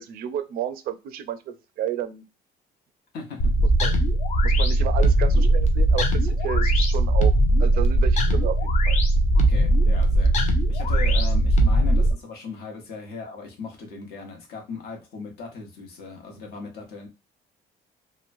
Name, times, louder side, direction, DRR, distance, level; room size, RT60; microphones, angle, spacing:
voice 1, 0.0-2.2 3.8-4.0 4.4-7.3 7.6-9.0, right 10 dB, 60° right, 10 dB, 0.4 m, -31 dB
voice 2, 3.1-3.5 9.3-10.4 10.7-17.1, left 4 dB, 65° left, 1 dB, 1.0 m, -38 dB
sound 1, 3.4-12.1, right 1 dB, 40° left, 0.4 m, -19 dB
2.9 x 2.1 x 2.5 m, 0.27 s
cardioid pair, 175°, 18 cm